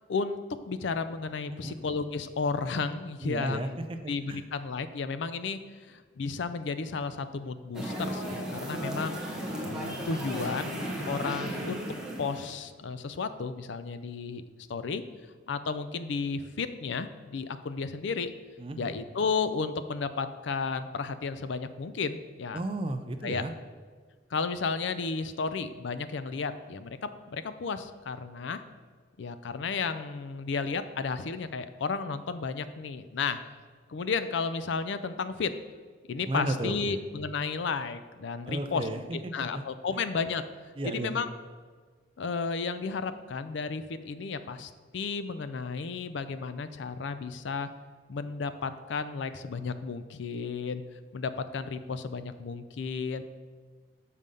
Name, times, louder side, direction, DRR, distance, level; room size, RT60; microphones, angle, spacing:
voice 1, 0.1-3.7 4.1-5.6 5.9-11.8 12.2-14.4 14.7-15.0 15.5-18.3 18.8-22.6 23.2-23.4 24.3-28.6 29.2-33.4 33.9-35.5 36.1-38.9 39.3-40.4 40.8-41.3 42.2-47.7 48.1-50.8 51.1-53.2, left 4 dB, 65° left, 12 dB, 0.4 m, -33 dB
voice 2, 3.2-4.4 18.6-18.9 22.5-23.5 36.3-36.9 38.4-39.7 40.8-41.1, right 1 dB, 25° right, 8 dB, 0.4 m, -34 dB
sound 1, 7.7-12.5, equal, 5° right, 0.9 m, -35 dB
6.4 x 5.5 x 5.3 m, 1.5 s
head